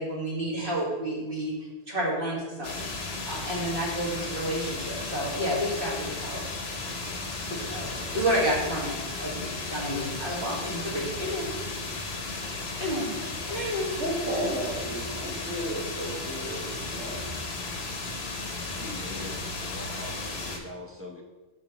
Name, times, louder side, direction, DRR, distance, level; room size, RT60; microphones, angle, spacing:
voice 1, 0.0-1.5 1.9-3.0 3.2-6.4 7.4-11.5 12.8-13.1 13.5-13.9, equal, 45° right, -5 dB, 2.0 m, -30 dB
sound 1, 2.6-20.6, left 3 dB, 60° left, 1.1 m, -35 dB
voice 2, 14.0-17.3, equal, 65° right, -4 dB, 2.1 m, -33 dB
voice 3, 18.7-21.2, left 1 dB, 15° right, -1 dB, 0.6 m, -42 dB
10.5 x 4.0 x 3.1 m, 1.2 s
omnidirectional pair, 1.2 m